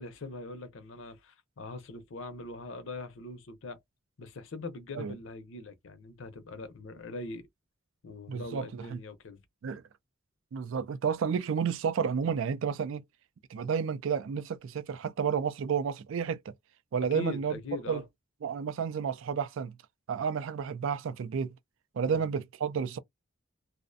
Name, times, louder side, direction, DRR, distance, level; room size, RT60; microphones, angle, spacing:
voice 1, 0.0-3.8 4.2-7.4 8.0-9.4 17.1-18.0 22.0-22.3, left 3 dB, 65° left, 0.6 m, -41 dB
voice 2, 8.3-9.0 9.6-9.8 10.5-13.0 13.5-16.4 16.9-17.6 17.9-18.0 18.4-19.8 20.1-21.5 22.0-23.0, right 6 dB, 70° right, 0.3 m, -31 dB
2.5 x 2.1 x 2.5 m
head